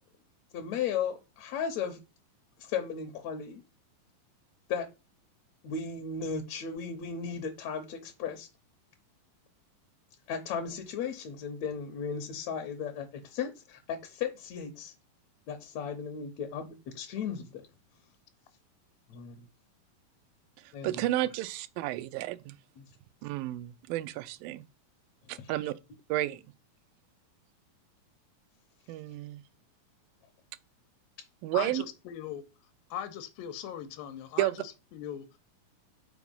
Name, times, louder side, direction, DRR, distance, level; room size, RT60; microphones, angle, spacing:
voice 1, 0.5-2.0 2.6-3.6 4.7-4.9 5.6-8.5 10.3-14.9 15.5-17.6 19.1-19.5 20.7-20.9, left 6 dB, 70° left, 1.8 m, -35 dB
voice 2, 20.6-22.6 23.2-24.6 25.3-25.7 26.1-26.4 28.9-29.4 31.4-31.8 34.4-34.6, right 15 dB, 85° right, 2.3 m, -32 dB
voice 3, 31.5-32.4 32.9-35.4, left 10 dB, 90° left, 2.5 m, -39 dB
6.0 x 4.6 x 5.3 m
omnidirectional pair, 4.0 m